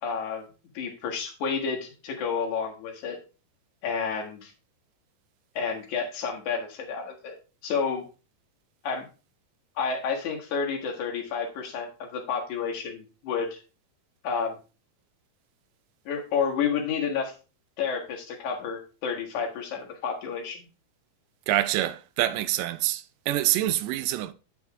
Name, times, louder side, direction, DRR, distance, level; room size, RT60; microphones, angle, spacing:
voice 1, 0.0-0.5 0.7-3.2 3.8-4.5 5.5-7.4 7.6-8.0 8.8-9.0 9.8-13.6 14.2-14.5 16.1-17.3 17.8-20.6, left 6 dB, 65° left, 2.9 m, -30 dB
voice 2, 21.5-24.3, right 14 dB, 90° right, 2.2 m, -26 dB
8.9 x 6.2 x 3.6 m
omnidirectional pair, 3.7 m